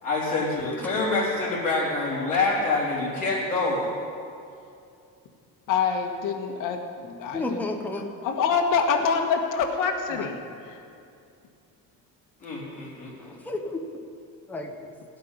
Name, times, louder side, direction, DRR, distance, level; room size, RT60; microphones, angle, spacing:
voice 1, 0.0-3.9 12.4-13.1, left 3 dB, 20° left, -8 dB, 3.6 m, -26 dB
voice 2, 5.7-7.7 8.0-10.8, left 6 dB, 60° left, 3 dB, 1.6 m, -26 dB
voice 3, 7.0-8.0 10.1-10.3 13.2-13.8 14.5-14.9, left 2 dB, 5° left, 1 dB, 0.8 m, -32 dB
17.0 x 5.7 x 9.9 m, 2.5 s
cardioid pair, 175°, 36 cm